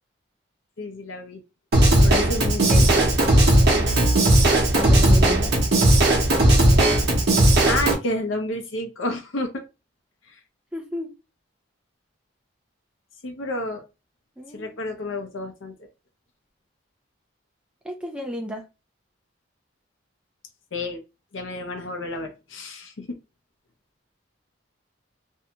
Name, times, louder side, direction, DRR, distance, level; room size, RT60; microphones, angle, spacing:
voice 1, 0.8-1.4 2.0-3.1 6.7-6.9 7.7-9.6 13.2-13.8 14.5-15.7 20.7-21.0 21.3-23.1, left 2 dB, 75° left, 0.7 m, -30 dB
Drum kit / Drum, 1.7-7.9, right 1 dB, 55° right, 0.8 m, -17 dB
voice 2, 4.7-5.5 10.7-11.1 14.4-14.8 17.8-18.6, equal, 5° right, 0.4 m, -32 dB
2.6 x 2.2 x 2.8 m
head